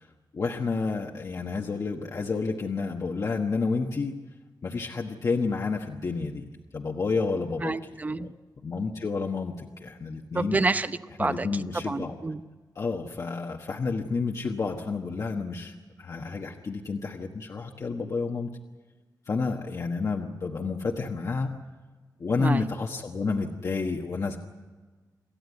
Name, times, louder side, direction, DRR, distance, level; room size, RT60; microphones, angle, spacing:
voice 1, 0.3-4.1 4.6-6.5 6.7-7.7 8.2-8.3 8.6-10.6 11.2-12.1 12.8-18.5 19.3-21.5 22.2-24.4, left 4 dB, 45° left, 1 dB, 1.3 m, -30 dB
voice 2, 7.6-8.3 10.3-12.4 22.4-22.7, right 3 dB, 25° right, 12 dB, 0.7 m, -29 dB
27.5 x 14.5 x 9.5 m, 1.3 s
wide cardioid pair, 155°, 7 cm